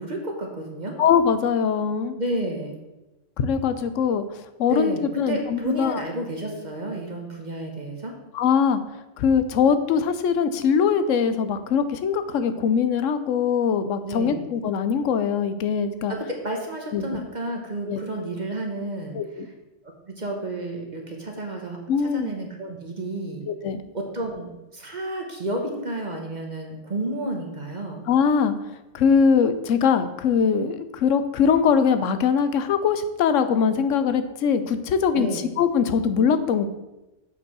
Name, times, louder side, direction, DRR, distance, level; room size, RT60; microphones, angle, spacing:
voice 1, 0.0-1.0 2.2-2.8 4.7-8.1 14.0-14.4 16.1-19.5 20.1-23.4 23.9-28.0 35.1-35.5, right 1 dB, 35° right, 1 dB, 1.3 m, -31 dB
voice 2, 1.0-2.1 3.4-4.2 4.6-6.0 8.3-8.8 9.2-16.1 16.9-17.2 17.9-18.0 19.1-19.5 21.9-22.3 23.5-23.8 28.1-28.5 28.9-35.3 35.6-36.7, left 6 dB, 75° left, 11 dB, 1.0 m, -22 dB
7.4 x 5.2 x 6.1 m, 1.0 s
omnidirectional pair, 1.3 m